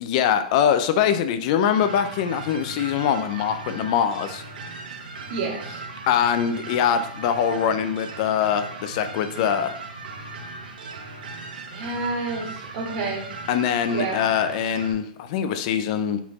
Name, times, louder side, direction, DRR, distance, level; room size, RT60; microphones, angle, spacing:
voice 1, 0.0-4.4 6.1-9.7 13.5-16.2, left 8 dB, 50° left, 9 dB, 0.6 m, -23 dB
sound 1, 1.7-14.9, right 3 dB, 80° right, 1.4 m, -38 dB
voice 2, 5.3-5.8 11.7-13.3 13.9-14.2, right 3 dB, 55° right, -3 dB, 2.1 m, -29 dB
5.8 x 4.2 x 4.1 m, 0.65 s
hypercardioid pair, 130°, 5 cm